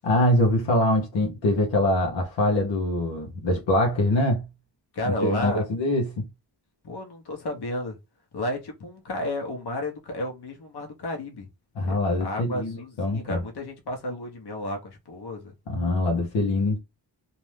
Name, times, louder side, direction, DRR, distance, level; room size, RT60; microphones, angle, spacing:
voice 1, 0.0-4.4 5.1-6.3 11.8-13.4 15.7-16.8, left 1 dB, 85° left, 0.9 m, -24 dB
voice 2, 4.9-5.6 6.8-8.0 8.3-11.5 11.8-15.5, left 1 dB, 60° left, 1.0 m, -32 dB
2.6 x 2.0 x 3.1 m
cardioid pair, 55°, 44 cm